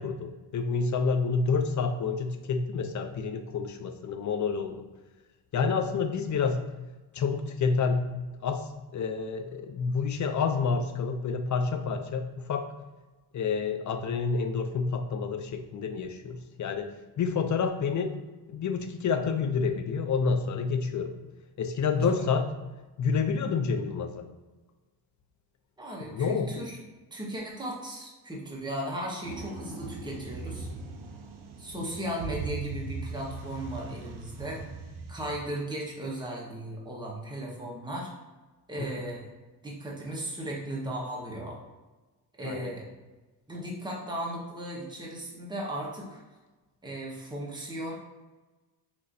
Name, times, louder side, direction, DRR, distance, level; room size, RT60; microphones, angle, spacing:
voice 1, 0.0-4.9 5.5-6.7 7.1-8.1 8.4-12.7 13.3-18.1 18.5-21.2 21.6-22.5 23.0-24.2 26.0-26.6 38.8-39.1 42.4-42.8, left 5 dB, 45° left, 7 dB, 0.6 m, -29 dB
voice 2, 25.8-26.8 27.1-30.7 31.6-34.6 35.1-38.1 38.7-39.3 39.6-41.6 42.4-42.9 43.5-46.2 46.8-47.9, right 1 dB, 10° right, -4 dB, 1.3 m, -36 dB
sound 1, 29.2-35.4, right 3 dB, 65° right, 0.8 m, -39 dB
6.5 x 3.0 x 2.7 m, 1.2 s
cardioid pair, 100°, 42 cm